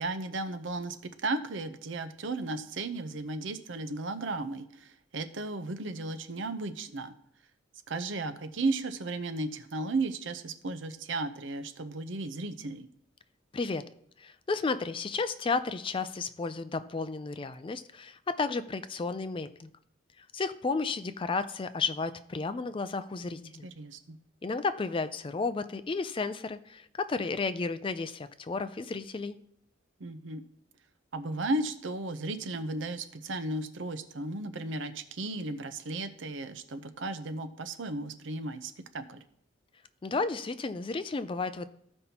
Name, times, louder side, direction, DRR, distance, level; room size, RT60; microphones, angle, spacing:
voice 1, 0.0-7.1 7.9-12.9 23.6-24.2 30.0-30.4 31.1-39.2, right 2 dB, 70° right, 10 dB, 0.7 m, -35 dB
voice 2, 13.5-13.8 14.2-19.7 20.2-23.7 24.4-29.4 40.0-41.7, left 4 dB, 25° left, 12 dB, 0.4 m, -33 dB
14.5 x 5.3 x 2.9 m, 0.69 s
head